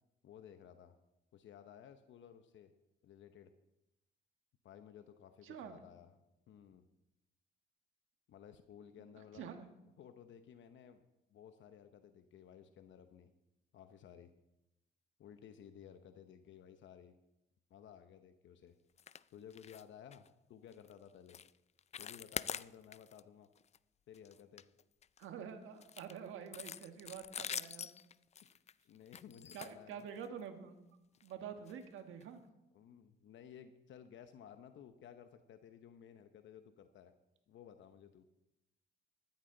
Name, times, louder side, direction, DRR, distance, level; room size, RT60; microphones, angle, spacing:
voice 1, 0.2-1.0 1.3-2.7 3.0-3.5 4.6-6.1 6.5-6.9 8.3-9.4 10.0-11.0 11.3-13.3 13.7-14.3 15.2-17.2 17.7-18.8 19.3-21.4 22.0-23.5 24.1-24.6 28.8-30.0 32.7-37.1 37.5-38.3, left 9 dB, 70° left, 8 dB, 0.9 m, -56 dB
voice 2, 5.4-5.8 9.0-9.7 25.2-27.9 29.5-30.9 31.2-32.4, right 7 dB, 85° right, 6 dB, 1.6 m, -48 dB
sound 1, 19.0-19.2 19.5-19.8 20.1-20.3 20.7-20.9 21.3-21.5 21.8-23.2 23.6-23.8 24.1-25.3 25.8-30.4 31.1-31.3 31.7-31.8 32.2-32.3, left 8 dB, 35° left, 0.4 m, -45 dB
14.0 x 13.5 x 3.9 m, 0.93 s
cardioid pair, 90°, 20 cm